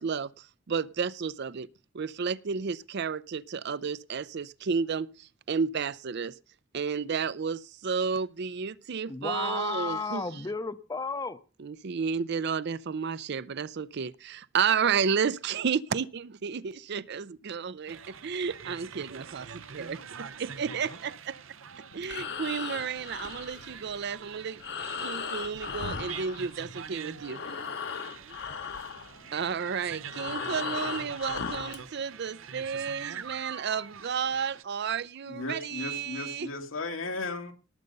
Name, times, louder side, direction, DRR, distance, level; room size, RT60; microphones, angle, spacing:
voice 1, 0.0-1.7 1.9-6.3 6.7-10.2 11.6-19.5 19.7-21.1 21.9-24.6 25.0-27.4 29.3-36.5, right 6 dB, 60° right, 0.5 m, -32 dB
voice 2, 9.1-11.4, left 4 dB, 20° left, 0.6 m, -33 dB
sound 1, 17.9-34.6, right 7 dB, 90° right, 0.9 m, -45 dB
Breathing, 21.9-26.9 27.2-31.9, left 6 dB, 60° left, 1.0 m, -37 dB
voice 3, 35.3-37.5, left 3 dB, 85° left, 1.9 m, -35 dB
18.5 x 6.8 x 5.3 m
head